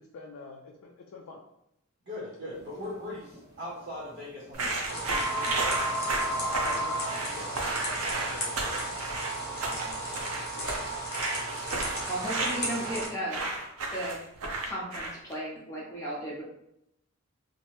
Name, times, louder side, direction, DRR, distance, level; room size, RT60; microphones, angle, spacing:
voice 1, 0.0-1.4 6.4-9.0 10.5-10.9, left 3 dB, 75° left, -1 dB, 0.3 m, -46 dB
voice 2, 2.0-5.8 9.4-10.3, left 1 dB, 45° right, -6 dB, 0.8 m, -41 dB
sound 1, 2.6-8.6, equal, 15° right, 1.1 m, -34 dB
sound 2, 4.5-15.3, right 2 dB, 80° right, 0.5 m, -33 dB
sound 3, 4.8-13.1, right 1 dB, 45° left, 0.8 m, -35 dB
voice 3, 12.1-13.5 13.9-14.2 14.6-16.4, right 1 dB, 15° left, -6 dB, 0.7 m, -35 dB
2.8 x 2.0 x 3.0 m, 0.79 s
head